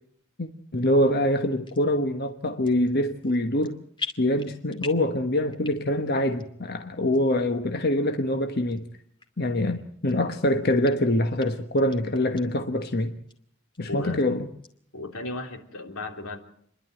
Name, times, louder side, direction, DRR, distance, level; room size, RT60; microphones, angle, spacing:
voice 1, 0.4-3.8 4.2-8.8 9.4-13.1 13.8-14.5, left 1 dB, 50° left, 1.3 m, -24 dB
sound 1, 1.6-1.8 2.5-2.9 3.2-3.7 4.0-5.1 5.5-6.0 6.4-6.5 7.1-7.2 7.9-8.0 8.7-8.8 9.2-9.3 9.8-10.4 10.8-10.9 11.4-11.5 11.8-12.4 12.8-12.9 13.3-13.4 13.7-14.2 14.6-14.7, left 4 dB, 25° left, 2.4 m, -39 dB
voice 2, 13.9-14.2 14.9-16.4, left 2 dB, 90° left, 3.3 m, -35 dB
28.5 x 11.5 x 9.1 m
head